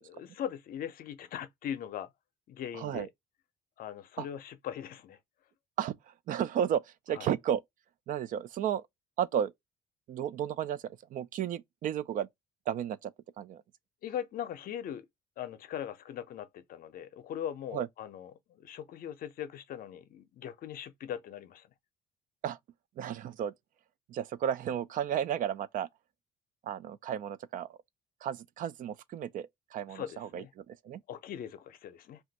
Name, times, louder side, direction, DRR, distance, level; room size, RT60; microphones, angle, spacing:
voice 1, 0.0-2.1 2.5-3.1 3.8-5.2 7.1-7.3 14.0-15.0 15.4-21.7 29.9-30.5 31.1-32.2, left 10 dB, 60° left, 0.6 m, -40 dB
voice 2, 2.7-3.1 4.2-4.3 5.8-7.6 8.1-8.8 9.2-9.5 10.1-12.3 12.7-13.6 17.7-17.9 22.4-22.6 23.0-23.5 24.1-25.9 26.6-27.8 28.2-31.0, right 9 dB, 50° right, 0.4 m, -33 dB
2.5 x 2.3 x 3.9 m
cardioid pair, 110°, 17 cm